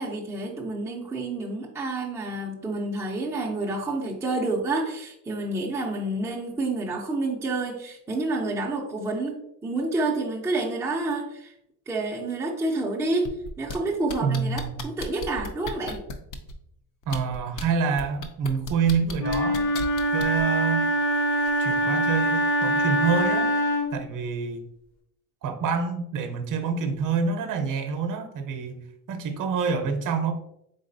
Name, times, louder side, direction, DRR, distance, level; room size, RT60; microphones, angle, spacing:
voice 1, 0.0-9.4 9.6-11.5 11.9-16.0, right 2 dB, 5° right, -3 dB, 0.4 m, -29 dB
sound 1, 13.3-13.8 14.1-16.5 17.0-17.6 18.0-20.4 21.5-21.6, left 3 dB, 45° left, 0.5 m, -35 dB
voice 2, 14.2-14.8 17.1-19.7 20.1-20.9 21.6-23.5 23.9-24.6 25.4-30.3, right 5 dB, 45° right, 6 dB, 0.7 m, -27 dB
Wind instrument woodwind instrument, 19.2-24.0, equal, 70° left, 1.2 m, -24 dB
4.0 x 3.5 x 2.6 m, 0.78 s
cardioid pair, 125°, 45 cm